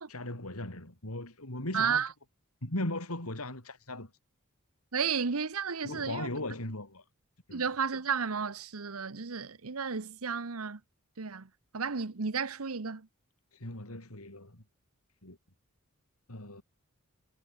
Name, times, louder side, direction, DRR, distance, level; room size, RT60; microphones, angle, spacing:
voice 1, 0.1-2.0 2.6-4.1 5.8-7.0 7.5-7.6 13.5-14.6 15.2-15.4 16.3-16.6, left 1 dB, 90° left, 5.4 m, -38 dB
voice 2, 1.7-2.1 4.9-6.3 7.5-10.8 11.2-13.1, right 6 dB, 80° right, 1.0 m, -33 dB
head